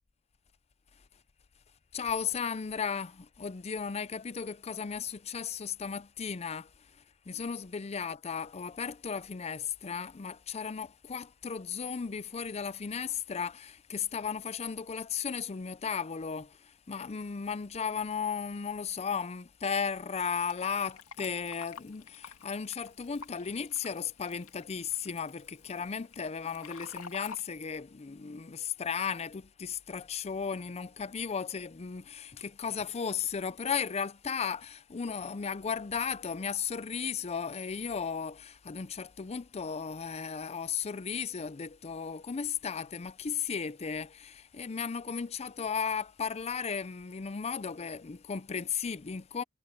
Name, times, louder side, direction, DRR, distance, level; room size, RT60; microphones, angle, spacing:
voice 1, 1.9-6.7 7.3-16.6 16.9-49.4, left 6 dB, 30° left, 0.5 m, -35 dB
Fill (with liquid), 20.5-27.4, left 5 dB, 70° left, 2.6 m, -50 dB
head